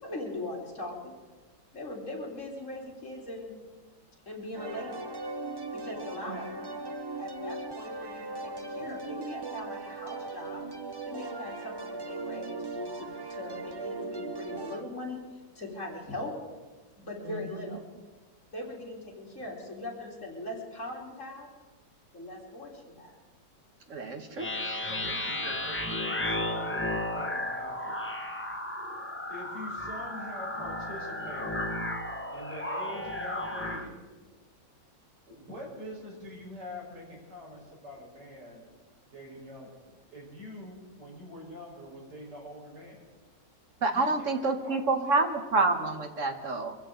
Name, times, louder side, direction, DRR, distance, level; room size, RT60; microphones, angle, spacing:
voice 1, 0.0-1.1 1.7-3.5 4.3-5.0 5.7-6.7 7.2-10.6 11.1-15.2 15.6-16.3 17.0-17.8 18.5-21.5 22.1-23.1, left 2 dB, 45° left, -3 dB, 3.9 m, -40 dB
sound 1, 4.5-14.8, right 3 dB, 30° right, 0.4 m, -38 dB
voice 2, 23.9-24.5 43.8-46.7, right 3 dB, 50° right, 6 dB, 1.5 m, -28 dB
sound 2, 24.4-33.9, left 1 dB, 10° left, 0.7 m, -34 dB
voice 3, 24.9-28.1 29.3-31.6 32.3-34.1 35.3-38.6 39.1-43.0 43.9-45.2, left 1 dB, 70° right, -3 dB, 5.4 m, -45 dB
24.5 x 15.0 x 3.8 m, 1.3 s
omnidirectional pair, 1.9 m